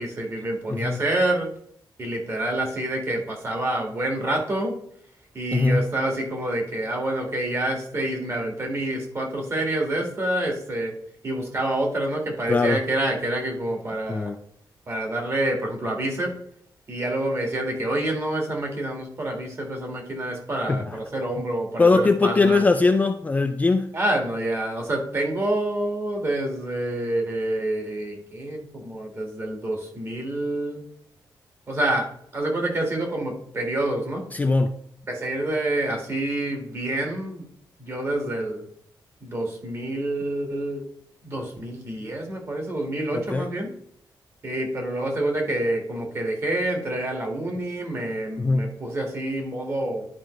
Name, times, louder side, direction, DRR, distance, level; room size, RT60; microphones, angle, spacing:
voice 1, 0.0-1.5 2.0-4.8 5.3-10.9 11.2-14.4 14.9-16.3 16.9-22.6 23.9-30.8 31.7-34.2 35.1-37.5 37.8-38.6 39.2-40.8 41.2-43.7 44.4-50.1, right 1 dB, 35° right, 1.8 m, -27 dB
voice 2, 0.7-1.0 5.5-5.9 12.5-12.8 14.1-14.4 20.7-21.0 21.8-23.9 34.3-34.7 43.1-43.5 48.4-48.7, left 3 dB, 20° left, 0.3 m, -21 dB
11.0 x 5.0 x 3.2 m
wide cardioid pair, 175°, 8 cm